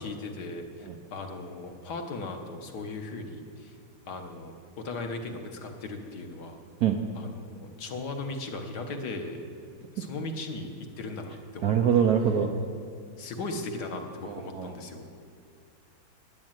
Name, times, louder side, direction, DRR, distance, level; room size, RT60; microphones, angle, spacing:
voice 1, 0.0-3.8 4.1-6.6 7.1-9.4 9.9-10.7 11.0-12.0 13.2-15.1, left 3 dB, 55° left, 4 dB, 1.6 m, -37 dB
voice 2, 11.6-12.5 14.2-14.7, right 8 dB, 70° right, 4 dB, 0.9 m, -24 dB
11.0 x 9.6 x 9.0 m, 2.3 s
omnidirectional pair, 2.4 m